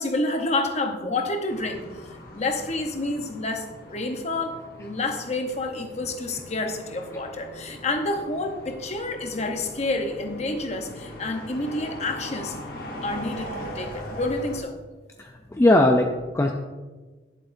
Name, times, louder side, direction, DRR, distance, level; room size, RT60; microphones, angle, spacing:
voice 1, 0.0-12.6 13.0-14.8, left 2 dB, 35° left, 5 dB, 0.8 m, -29 dB
sound 1, 1.5-14.6, equal, 55° left, 1.1 m, -40 dB
voice 2, 15.2-16.5, left 1 dB, 15° left, 2 dB, 0.4 m, -20 dB
11.0 x 7.5 x 2.6 m, 1.3 s
head